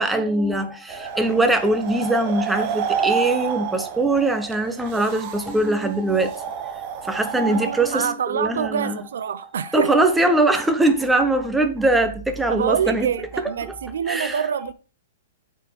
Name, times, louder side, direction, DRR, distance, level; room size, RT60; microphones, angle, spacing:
voice 1, 0.0-9.0 9.3-9.5 9.7-13.1 13.7-14.4, right 2 dB, 5° right, 1.0 m, -22 dB
sound 1, 0.9-8.0, right 8 dB, 40° right, 1.0 m, -29 dB
voice 2, 7.4-10.1 12.5-14.7, right 8 dB, 75° right, 0.5 m, -26 dB
7.9 x 4.3 x 4.5 m
hypercardioid pair, 135°, 0 cm